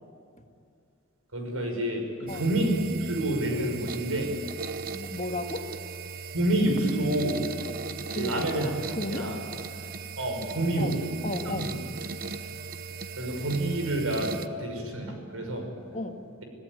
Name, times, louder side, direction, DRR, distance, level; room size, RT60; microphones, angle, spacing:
voice 1, 1.3-4.3 6.3-7.4 8.1-8.7 9.1-9.4 10.2-10.9 11.5-11.8 13.2-14.3 14.6-15.7, right 1 dB, 90° right, 3 dB, 6.0 m, -28 dB
sound 1, 2.3-14.5, right 5 dB, 45° right, 0.9 m, -38 dB
voice 2, 4.9-5.7 8.1-8.4 9.0-9.3 10.8-11.7 15.9-16.2, left 2 dB, 35° left, 4 dB, 1.9 m, -34 dB
26.5 x 17.0 x 9.9 m, 2.4 s
head